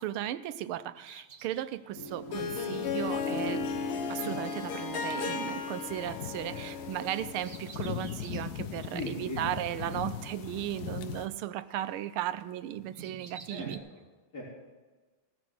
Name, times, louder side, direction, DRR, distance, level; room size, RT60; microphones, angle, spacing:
voice 1, 0.0-3.7 4.1-13.8, right 12 dB, 85° right, 13 dB, 1.5 m, -36 dB
Bird vocalization bird call bird song, 1.0-5.6 5.8-8.6 9.0-9.1 10.0-11.5 11.7-13.8, right 5 dB, 45° right, 1.2 m, -50 dB
Harp, 2.0-7.7, left 5 dB, 85° left, 2.0 m, -35 dB
sound 1, 2.3-11.3, left 8 dB, 65° left, 1.0 m, -41 dB
voice 2, 6.5-6.9 8.9-9.4 13.5-14.0 14.3-14.4, left 1 dB, 45° left, -8 dB, 4.0 m, -39 dB
17.0 x 6.2 x 7.6 m, 1.3 s
omnidirectional pair, 2.3 m